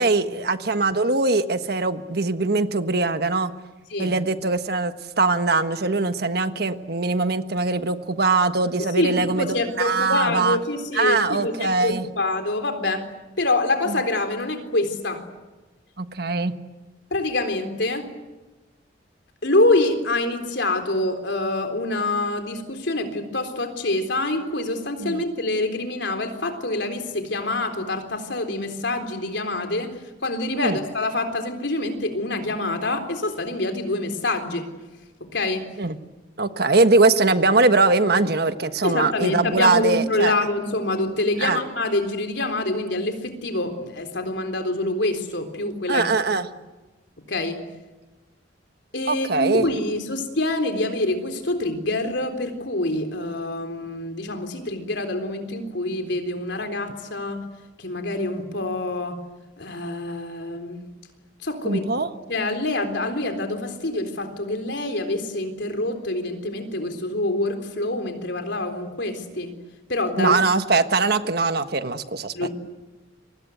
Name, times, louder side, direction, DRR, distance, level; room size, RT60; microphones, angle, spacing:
voice 1, 0.0-3.5 4.0-9.5 9.8-10.6 10.9-12.1 13.9-14.0 16.0-16.5 25.0-25.2 30.6-30.8 35.8-36.0 36.4-40.3 41.4-41.6 45.9-46.5 49.1-49.6 61.6-62.1 70.2-72.5, right 3 dB, 55° right, 9 dB, 1.4 m, -21 dB
voice 2, 8.8-13.1 13.4-15.2 17.1-18.1 19.4-29.9 30.2-34.7 35.2-35.7 38.8-46.1 47.3-47.6 48.9-57.4 57.8-59.2 59.6-60.8 61.4-61.8 62.2-69.5 69.9-70.4 72.3-72.5, left 2 dB, 70° left, 6 dB, 3.8 m, -26 dB
30.0 x 24.5 x 8.1 m, 1.2 s
head